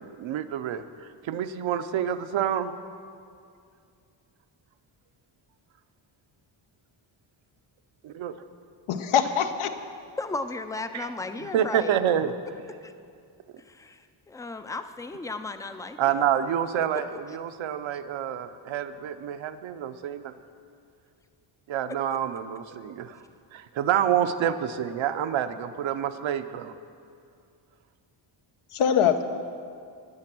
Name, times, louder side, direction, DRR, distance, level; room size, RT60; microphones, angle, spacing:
voice 1, 0.0-2.7 8.0-8.3 10.9-11.1 11.4-12.3 16.0-20.3 21.7-23.2 23.5-26.7, right 9 dB, 70° right, 10 dB, 0.8 m, -28 dB
voice 2, 8.9-9.7 28.7-29.2, left 8 dB, 90° left, 8 dB, 1.0 m, -23 dB
voice 3, 10.2-12.0 12.8-12.9 13.7-16.2, left 3 dB, 10° left, 9 dB, 0.3 m, -35 dB
19.5 x 7.6 x 6.1 m, 2.3 s
wide cardioid pair, 155°, 48 cm